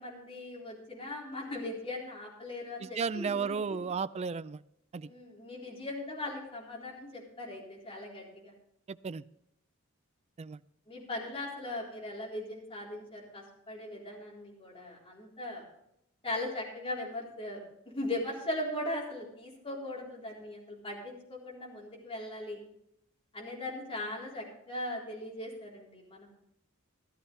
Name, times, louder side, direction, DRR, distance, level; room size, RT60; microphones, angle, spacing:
voice 1, 0.0-3.9 5.0-8.5 10.9-15.6 16.2-17.6 17.9-22.6 23.3-26.3, left 1 dB, 25° left, -4 dB, 3.9 m, -39 dB
voice 2, 2.8-4.6 4.9-5.1 8.9-9.2 10.4-10.6, right 5 dB, 30° right, 16 dB, 0.3 m, -34 dB
14.5 x 12.5 x 3.4 m, 0.78 s
head